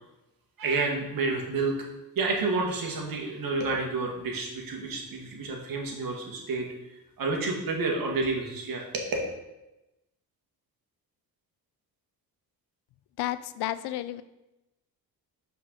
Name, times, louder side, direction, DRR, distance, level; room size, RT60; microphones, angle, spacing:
voice 1, 0.6-1.9 2.2-9.1, right 3 dB, 60° right, 0 dB, 1.8 m, -30 dB
voice 2, 13.2-14.2, left 14 dB, 90° left, 14 dB, 0.5 m, -31 dB
6.2 x 4.6 x 6.4 m, 0.96 s
cardioid pair, 120°, 38 cm